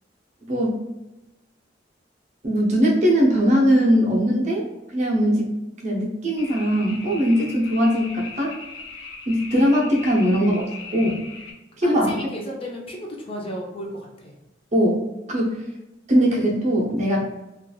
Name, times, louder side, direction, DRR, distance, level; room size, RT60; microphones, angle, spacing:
voice 1, 0.4-0.8 2.4-5.5 5.8-8.5 9.3-10.6 10.9-11.1 11.8-12.2 14.7-15.6 16.1-17.2, equal, 40° right, -2 dB, 0.6 m, -20 dB
sound 1, 6.4-11.5, left 4 dB, 75° left, 0.5 m, -39 dB
voice 2, 10.9-11.2 11.8-14.4, left 1 dB, 30° left, -1 dB, 0.5 m, -34 dB
3.0 x 2.3 x 2.3 m, 0.99 s
head